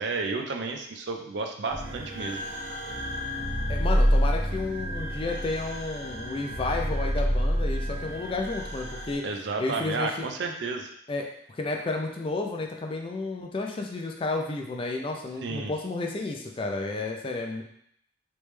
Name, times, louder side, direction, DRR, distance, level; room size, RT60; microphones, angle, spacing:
voice 1, 0.0-2.4 9.2-10.9 15.4-15.7, right 4 dB, 60° right, 4 dB, 0.4 m, -32 dB
sound 1, 1.7-9.1, equal, 75° right, 1.2 m, -28 dB
voice 2, 3.7-9.2 9.6-10.3 11.1-17.6, left 3 dB, 25° left, 2 dB, 0.4 m, -32 dB
3.3 x 3.1 x 3.2 m, 0.71 s
head